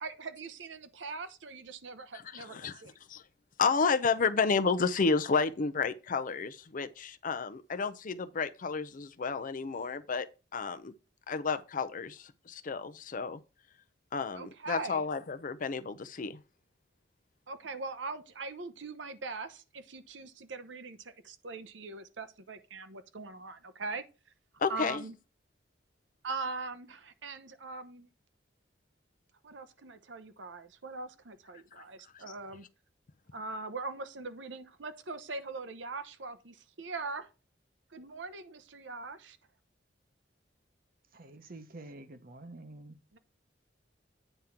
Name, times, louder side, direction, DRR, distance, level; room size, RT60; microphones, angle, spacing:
voice 1, 0.0-2.9 14.3-15.0 17.5-24.0 24.7-25.1 26.2-28.1 29.4-32.7 33.3-37.3 37.9-39.4 43.1-43.2, right 3 dB, 75° right, 0.9 m, -41 dB
voice 2, 2.3-2.8 3.1-3.2 3.6-10.3 10.5-10.9 11.3-13.4 14.1-16.4 24.6-25.0, left 5 dB, 45° left, 0.5 m, -31 dB
voice 3, 41.1-43.0, right 2 dB, 50° right, 1.0 m, -48 dB
9.1 x 3.7 x 5.7 m
head